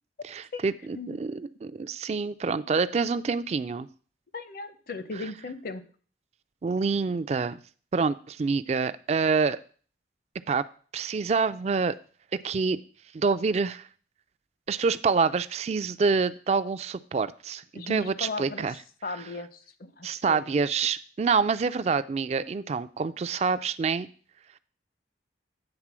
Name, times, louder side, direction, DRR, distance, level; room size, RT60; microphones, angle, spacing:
voice 1, 0.2-0.7 1.2-3.9 6.6-7.6 7.9-9.6 10.5-10.6 10.9-12.0 12.4-12.8 13.1-13.9 14.7-18.7 20.0-24.1, right 5 dB, 35° right, 14 dB, 0.3 m, -26 dB
voice 2, 4.3-5.8 17.7-20.5, left 3 dB, 55° left, 11 dB, 0.7 m, -37 dB
8.8 x 3.6 x 6.1 m, 0.43 s
head